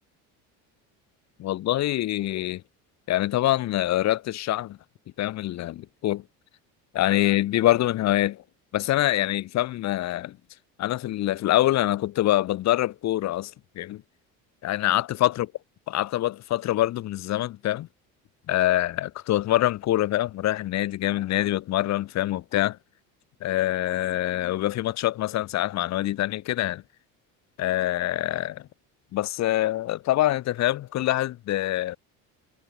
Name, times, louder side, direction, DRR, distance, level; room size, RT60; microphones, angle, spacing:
voice 1, 1.4-2.6 3.1-4.8 5.2-6.2 6.9-8.4 8.7-10.4 10.8-14.0 14.6-15.5 15.9-17.9 18.5-22.8 23.4-26.8 27.6-28.6 29.1-32.0, left 14 dB, 50° left, 2.1 m, -25 dB
cardioid pair, 145°, 34 cm